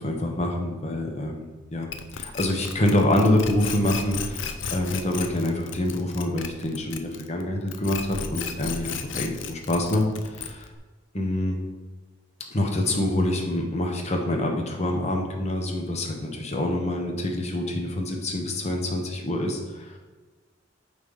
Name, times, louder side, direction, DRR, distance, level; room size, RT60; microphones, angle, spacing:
voice 1, 0.0-1.9 2.1-10.7 11.1-11.6 12.5-20.0, left 1 dB, 35° left, 2 dB, 1.2 m, -26 dB
sound 1, 1.9-7.4 7.7-10.8, left 6 dB, 85° left, 0.6 m, -34 dB
8.4 x 3.5 x 5.5 m, 1.3 s
head